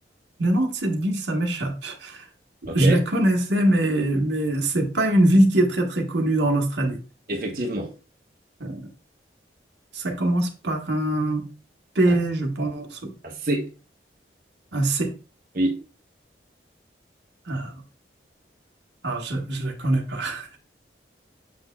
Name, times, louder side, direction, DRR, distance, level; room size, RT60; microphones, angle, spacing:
voice 1, 0.4-2.2 2.7-7.0 8.6-8.8 9.9-11.4 11.9-13.1 14.7-15.1 17.5-17.7 19.0-20.6, right 1 dB, 85° right, 1.4 m, -23 dB
voice 2, 2.7-3.0 7.3-7.9 12.1-12.2 13.2-13.7 15.5-15.8, right 1 dB, 50° right, 1.1 m, -26 dB
7.0 x 6.1 x 2.3 m
head